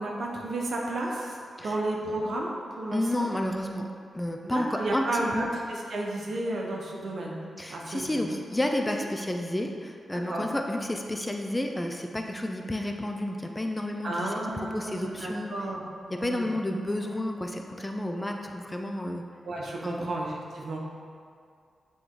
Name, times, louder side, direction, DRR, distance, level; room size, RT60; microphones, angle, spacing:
voice 1, 0.0-3.3 4.4-7.4 7.7-8.2 10.1-10.5 14.0-15.8 16.1-16.5 19.4-20.9, right 2 dB, 70° right, -2 dB, 1.0 m, -32 dB
voice 2, 2.9-5.5 7.6-14.3 14.6-15.6 16.1-19.2 19.8-20.1, left 1 dB, 15° left, 3 dB, 0.6 m, -31 dB
9.0 x 3.1 x 3.8 m, 2.3 s
cardioid pair, 55°, 0 cm